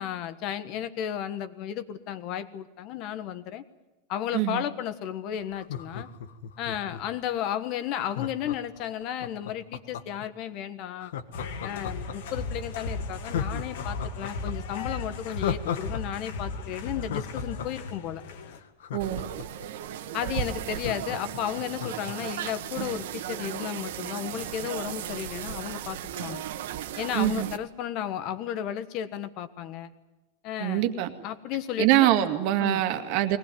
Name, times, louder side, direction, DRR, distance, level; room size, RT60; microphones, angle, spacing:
voice 1, 0.0-3.6 4.1-6.1 6.6-11.1 11.6-18.2 20.1-26.5 27.0-29.9 30.4-30.9 31.2-32.1 32.6-32.8, left 10 dB, 40° left, 13 dB, 1.4 m, -33 dB
voice 2, 4.3-4.6 18.9-19.2 27.1-27.5 30.6-31.1 31.8-33.4, right 13 dB, 45° right, 7 dB, 2.1 m, -24 dB
Laughter, 5.5-7.2 8.1-10.3 11.0-12.4 12.8-12.9 13.2-16.0 16.3-16.4 16.7-19.7 20.1-20.2 20.4-22.1 22.5-22.6, left 9 dB, 90° left, 1.6 m, -35 dB
sound 1, 11.3-18.6, left 3 dB, 70° left, 2.5 m, -36 dB
sound 2, 19.0-27.6, right 10 dB, 75° right, 1.6 m, -36 dB
21.5 x 19.5 x 9.5 m, 1.1 s
supercardioid pair, 160°, 0 cm